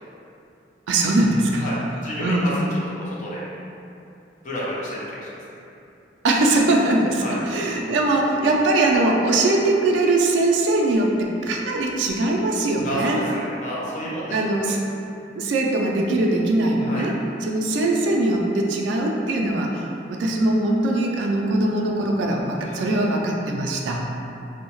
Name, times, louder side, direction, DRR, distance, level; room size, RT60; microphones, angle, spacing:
voice 1, 0.9-1.7 2.2-2.7 6.2-13.2 14.3-14.8 15.4-17.1 17.4-24.0, right 2 dB, 75° right, -1 dB, 0.3 m, -21 dB
voice 2, 2.0-2.5 3.0-3.5 4.4-5.3 7.2-7.4 12.8-14.7 16.8-17.1 22.6-22.9, equal, 40° left, -7 dB, 0.6 m, -30 dB
2.6 x 2.1 x 2.9 m, 2.7 s
head